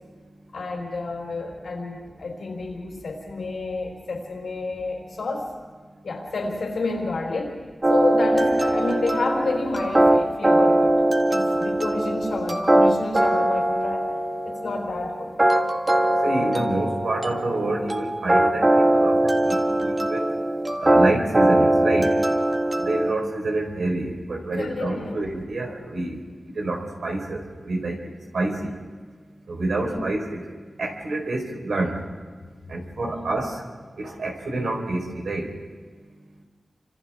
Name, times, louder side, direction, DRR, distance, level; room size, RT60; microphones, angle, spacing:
voice 1, 0.5-5.5 6.0-7.6 7.9-11.0 11.3-14.1 14.4-15.3 24.5-25.3 29.8-30.1 33.0-33.4, left 3 dB, 90° left, 0 dB, 4.3 m, -30 dB
sound 1, 7.8-23.1, right 1 dB, 30° right, 1.8 m, -21 dB
voice 2, 16.2-20.2 20.8-22.1 22.8-26.2 26.6-28.0 28.3-28.7 29.5-30.4 30.8-31.9 32.7-33.6 34.0-35.4, right 2 dB, 90° right, 1 dB, 4.4 m, -27 dB
30.0 x 26.5 x 3.7 m, 1.5 s
wide cardioid pair, 85°, 0 cm